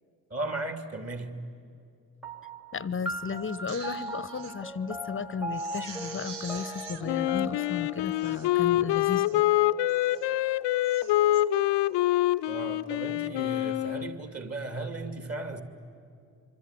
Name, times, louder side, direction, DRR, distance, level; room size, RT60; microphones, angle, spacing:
voice 1, 0.3-1.4 12.5-15.6, right 2 dB, 30° right, 2.9 m, -36 dB
sound 1, 2.2-11.0, equal, ahead, 1.2 m, -40 dB
voice 2, 2.7-9.5, left 5 dB, 25° left, 0.9 m, -34 dB
Crying sobbing, 3.5-4.5 5.0-5.1 5.5-7.0 7.7-7.8 8.1-8.5 9.0-9.4 9.9-10.3 10.7-11.4 11.9-12.2, right 5 dB, 90° right, 0.9 m, -45 dB
Wind instrument woodwind instrument, 7.0-14.2, left 15 dB, 65° left, 0.7 m, -26 dB
25.0 x 24.5 x 9.3 m
hypercardioid pair, 40°, 46 cm